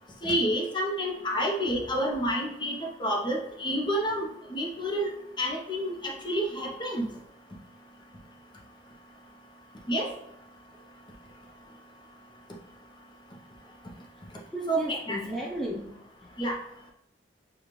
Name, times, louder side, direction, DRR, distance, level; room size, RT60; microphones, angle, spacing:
voice 1, 0.2-5.1 5.4-7.1 9.9-10.1 14.7-15.2 16.4-16.6, equal, 25° left, 0 dB, 0.7 m, -29 dB
voice 2, 14.5-16.0 16.2-16.3, equal, ahead, -2 dB, 0.4 m, -34 dB
6.7 x 2.3 x 3.0 m, 0.81 s
head